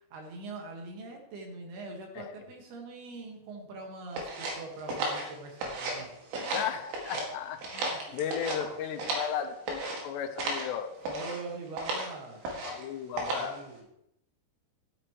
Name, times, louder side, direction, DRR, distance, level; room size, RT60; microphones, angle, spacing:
voice 1, 0.1-6.6 8.1-8.2 11.0-12.4 13.2-13.9, right 3 dB, 70° right, 2 dB, 3.6 m, -43 dB
sound 1, 4.1-6.0 6.3-7.3 7.6-9.3 9.7-10.0 10.4-10.7 11.0-11.4 11.8-12.1 12.4-12.8 13.2-13.6, right 2 dB, 90° right, 4.2 m, -34 dB
voice 2, 6.5-10.9 12.6-13.6, left 8 dB, 85° left, 6 dB, 3.0 m, -35 dB
12.5 x 11.5 x 3.1 m, 0.79 s
omnidirectional pair, 4.9 m